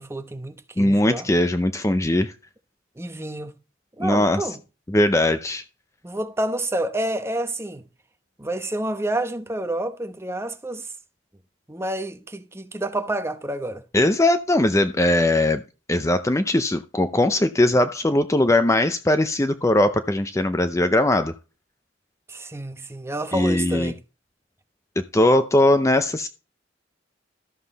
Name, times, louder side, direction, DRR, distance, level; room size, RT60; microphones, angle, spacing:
voice 1, 0.0-1.3 3.0-3.5 4.0-4.6 6.0-7.8 8.4-10.9 11.7-13.8 22.3-24.0, right 1 dB, 15° right, 0.9 m, -29 dB
voice 2, 0.8-2.3 4.0-4.5 4.9-5.6 13.9-15.6 15.9-21.3 23.3-23.9 25.1-26.3, left 1 dB, 15° left, 0.6 m, -20 dB
13.5 x 7.3 x 4.1 m
head